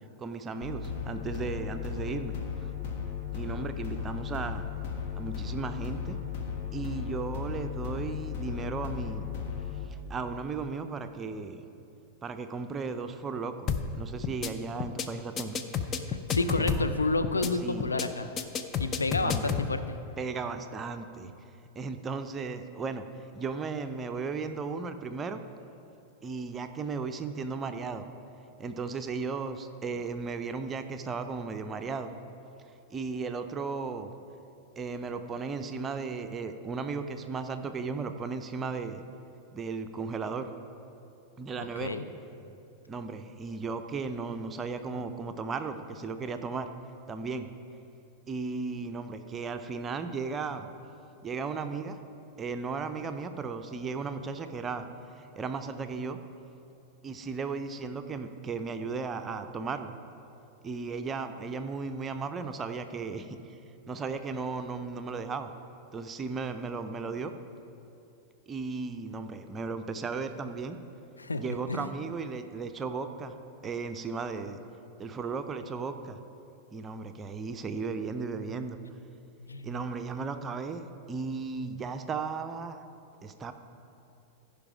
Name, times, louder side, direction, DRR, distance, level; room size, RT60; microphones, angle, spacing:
voice 1, 0.2-2.7 3.3-4.6 5.2-6.2 6.7-9.3 9.9-11.7 12.2-13.7 13.9-15.6 16.5-16.9 17.6-17.9 19.2-19.6 20.2-21.3 21.8-25.4 26.2-28.1 28.6-32.1 32.9-34.1 34.8-39.0 39.5-40.5 41.4-42.0 42.9-46.7 47.1-47.5 48.3-50.7 51.2-52.0 52.4-54.9 55.2-56.2 57.0-59.9 60.6-63.6 63.9-65.5 65.9-67.3 68.5-70.8 71.3-73.3 73.6-74.6 75.0-76.2 76.7-78.8 79.6-82.8 83.2-83.5, right 4 dB, 20° right, 8 dB, 0.6 m, -35 dB
sound 1, 0.6-9.8, left 7 dB, 45° left, 1.3 m, -36 dB
sound 2, 13.7-14.0 14.2-14.5 14.8-15.1 15.4-17.0 17.2-17.5 17.8-18.1 18.4-19.7, left 7 dB, 25° left, 0.6 m, -30 dB
voice 2, 16.3-18.3 18.8-20.0 41.8-42.0 71.2-71.4 71.7-71.9 79.4-79.7, left 3 dB, 80° left, 9 dB, 0.5 m, -30 dB
15.5 x 5.2 x 4.8 m, 2.7 s
figure-of-eight pair, 90°, 0 cm